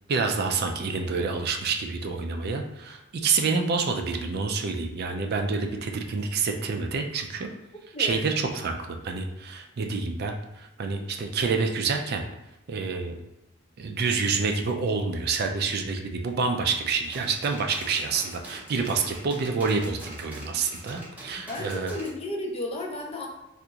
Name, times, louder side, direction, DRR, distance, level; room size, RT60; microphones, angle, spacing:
voice 1, 0.1-7.5 8.0-12.2 12.7-13.2 13.8-21.9, right 4 dB, 50° right, 4 dB, 0.4 m, -28 dB
voice 2, 7.9-8.2 21.5-23.3, left 1 dB, 30° left, 1 dB, 0.5 m, -33 dB
sound 1, 17.0-22.1, right 1 dB, 10° right, 0.7 m, -44 dB
3.5 x 2.5 x 2.8 m, 0.95 s
head